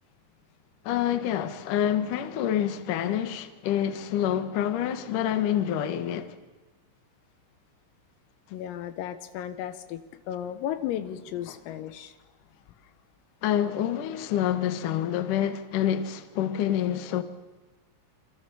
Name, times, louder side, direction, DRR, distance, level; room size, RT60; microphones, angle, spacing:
voice 1, 0.8-6.4 13.4-17.2, left 10 dB, 65° left, 2.1 m, -27 dB
voice 2, 8.5-12.2, left 10 dB, 85° left, 4.0 m, -34 dB
28.0 x 25.5 x 7.1 m
omnidirectional pair, 5.9 m